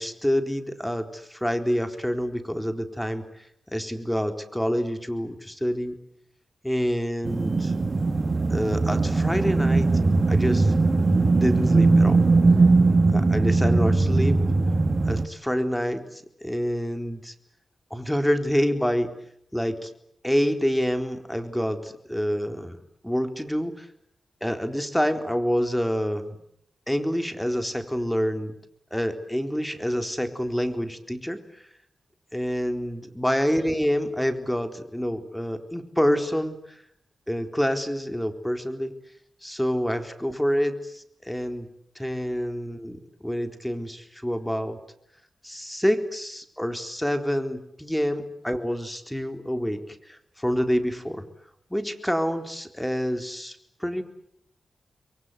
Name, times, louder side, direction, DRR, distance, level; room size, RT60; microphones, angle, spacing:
voice 1, 0.0-3.4 3.7-6.0 6.6-7.7 8.5-9.9 10.3-10.7 11.3-12.2 13.1-14.4 15.1-17.3 17.9-19.1 19.5-19.9 20.2-22.8 23.0-23.9 24.4-26.4 26.9-28.5 28.9-31.4 32.3-36.8 37.3-38.9 39.4-41.7 42.0-44.8 45.4-51.3 51.7-54.0, equal, 5° left, 6 dB, 4.0 m, -27 dB
sound 1, 7.2-15.3, right 3 dB, 45° right, 2.2 m, -20 dB
29.0 x 23.0 x 8.3 m, 0.73 s
supercardioid pair, 40°, 0 cm